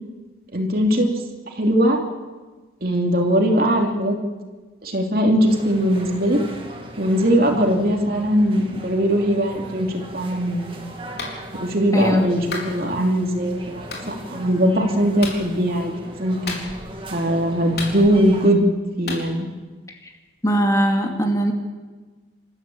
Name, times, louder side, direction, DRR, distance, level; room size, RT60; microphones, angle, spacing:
voice 1, 0.5-1.1 1.5-2.0 2.8-4.2 4.8-6.4 7.0-10.8 11.5-16.6 17.1-18.6 19.0-19.5, equal, 50° right, 2 dB, 2.9 m, -20 dB
sound 1, 5.5-18.5, right 1 dB, 30° right, 2.2 m, -39 dB
Clapping, 11.2-11.4 12.5-12.7 13.9-14.1 15.2-15.4 16.5-16.9 17.8-18.3 19.1-19.2, left 3 dB, 55° left, 4.2 m, -31 dB
voice 2, 11.9-12.3 20.4-21.5, equal, 20° left, 2 dB, 2.4 m, -20 dB
27.0 x 14.0 x 8.6 m, 1.3 s
head